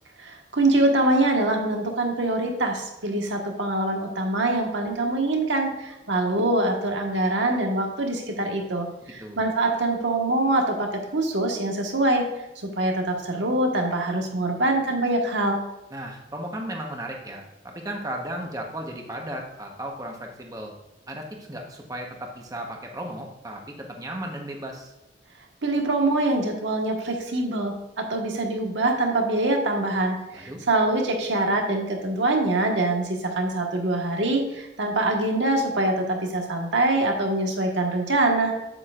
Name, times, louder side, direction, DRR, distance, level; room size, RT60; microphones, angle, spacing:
voice 1, 0.2-12.3 12.8-15.6 25.6-38.5, right 2 dB, 85° right, 2 dB, 1.5 m, -24 dB
voice 2, 15.9-20.7 21.1-24.9 30.3-30.6, right 1 dB, 20° right, 1 dB, 1.1 m, -35 dB
8.7 x 8.6 x 2.5 m, 1.0 s
head